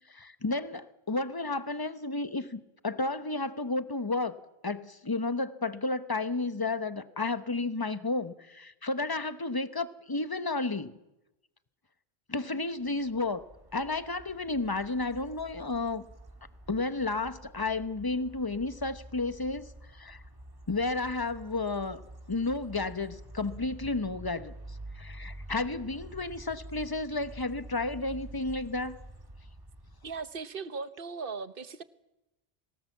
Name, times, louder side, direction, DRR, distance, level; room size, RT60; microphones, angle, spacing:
voice 1, 0.1-4.4 4.6-11.0 12.3-13.5 13.7-16.0 16.7-20.2 20.7-22.0 22.3-29.0, left 3 dB, 25° left, 12 dB, 1.0 m, -32 dB
sound 1, 12.8-30.4, right 1 dB, 20° right, 1.6 m, -48 dB
voice 2, 30.0-31.8, right 4 dB, 60° right, 13 dB, 1.2 m, -38 dB
26.0 x 18.5 x 7.3 m, 0.93 s
omnidirectional pair, 1.0 m